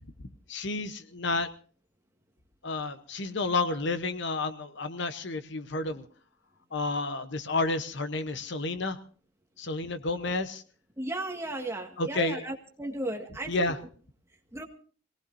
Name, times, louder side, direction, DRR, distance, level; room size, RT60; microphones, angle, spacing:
voice 1, 0.5-1.5 2.6-6.0 6.7-9.0 9.6-10.6 12.0-12.5 13.5-13.8, left 3 dB, 65° left, 10 dB, 1.0 m, -30 dB
voice 2, 11.0-13.7 14.5-14.6, right 1 dB, 15° right, 2 dB, 1.8 m, -35 dB
25.0 x 18.5 x 2.7 m, 0.42 s
head